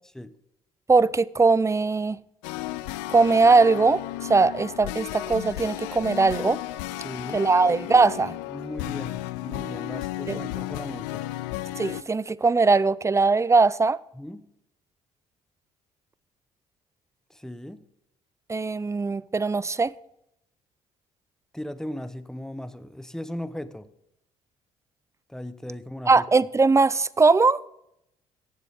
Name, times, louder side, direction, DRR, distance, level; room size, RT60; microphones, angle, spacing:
voice 1, 0.9-2.2 3.1-6.6 7.3-8.4 10.3-10.4 11.8-14.0 18.5-19.9 26.1-27.6, right 4 dB, 20° right, 0.4 m, -20 dB
sound 1, 2.4-12.0, left 16 dB, 80° left, 0.4 m, -34 dB
voice 2, 7.0-7.4 8.5-11.2 14.1-14.4 17.3-17.8 21.5-23.9 25.3-26.2, left 1 dB, 5° left, 0.9 m, -37 dB
17.5 x 7.4 x 3.7 m
hypercardioid pair, 55°, 16 cm